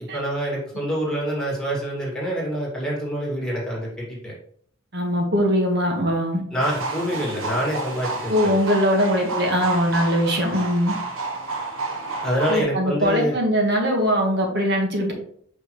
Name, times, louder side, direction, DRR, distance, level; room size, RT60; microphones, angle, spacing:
voice 1, 0.1-4.3 6.5-8.6 12.2-13.4, equal, 5° left, -5 dB, 2.1 m, -26 dB
voice 2, 4.9-6.4 8.3-10.9 12.5-15.1, equal, 55° right, 2 dB, 1.5 m, -21 dB
sound 1, 6.6-12.6, right 3 dB, 80° right, 1.1 m, -30 dB
6.0 x 5.4 x 3.1 m, 0.62 s
head